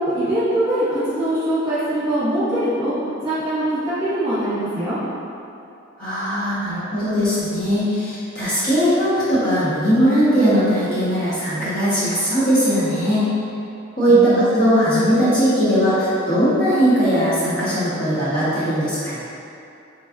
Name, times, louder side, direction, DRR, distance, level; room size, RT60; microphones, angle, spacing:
voice 1, 0.0-2.9 3.2-5.0 14.1-14.4, right 1 dB, 20° right, -14 dB, 1.3 m, -22 dB
voice 2, 6.0-13.3 14.0-19.2, equal, 45° left, -13 dB, 1.2 m, -19 dB
4.0 x 3.2 x 2.4 m, 2.7 s
head